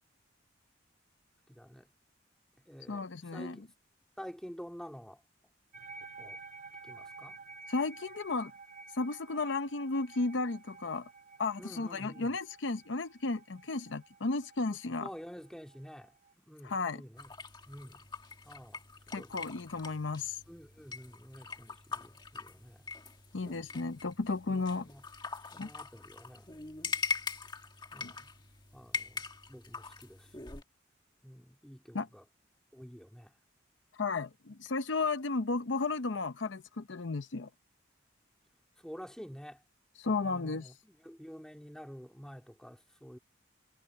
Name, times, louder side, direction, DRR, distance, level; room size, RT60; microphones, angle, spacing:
voice 1, 1.5-1.9 2.7-3.7 4.2-5.2 6.2-6.4 6.8-7.4 11.6-12.3 15.0-17.3 17.7-18.1 18.5-18.8 19.2-19.3 20.5-22.9 24.5-25.0 25.5-26.5 27.9-28.3 28.7-30.3 31.2-32.2 32.7-33.3 38.8-39.6 40.2-43.2, equal, 5° left, 3.5 m, -49 dB
voice 2, 2.9-3.6 7.7-8.5 8.9-11.1 11.4-15.1 16.6-17.0 19.1-20.4 23.3-24.9 25.6-25.7 28.0-28.1 31.9-32.1 33.9-37.5 40.0-40.7, left 3 dB, 70° left, 0.7 m, -34 dB
sound 1, 5.7-16.3, right 4 dB, 45° right, 2.4 m, -51 dB
sound 2, 17.2-30.6, left 5 dB, 25° left, 1.7 m, -42 dB
head